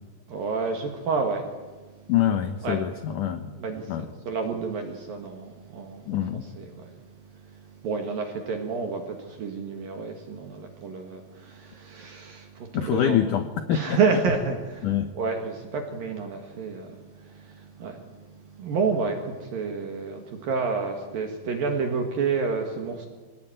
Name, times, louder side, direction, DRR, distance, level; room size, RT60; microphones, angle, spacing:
voice 1, 0.3-2.1 2.6-2.8 3.5-13.2 13.7-23.1, right 4 dB, 60° right, 4 dB, 3.2 m, -30 dB
voice 2, 2.1-3.5 3.9-4.1 6.1-6.4 12.7-14.0 14.8-15.1, left 10 dB, 80° left, 9 dB, 1.8 m, -25 dB
25.5 x 18.5 x 9.3 m, 1.3 s
omnidirectional pair, 5.2 m